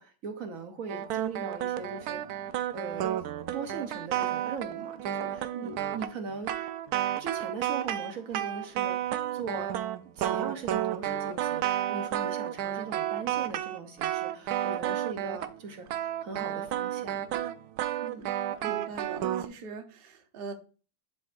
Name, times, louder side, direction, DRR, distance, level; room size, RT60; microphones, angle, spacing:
voice 1, 0.0-6.7 7.2-9.0 9.3-9.8 10.2-17.2, right 4 dB, 65° right, 7 dB, 1.2 m, -40 dB
sound 1, 0.9-15.6 15.9-19.5, right 12 dB, 85° right, 1.1 m, -31 dB
voice 2, 18.6-20.5, right 4 dB, 45° right, 6 dB, 0.9 m, -42 dB
11.5 x 5.1 x 2.5 m, 0.38 s
omnidirectional pair, 1.6 m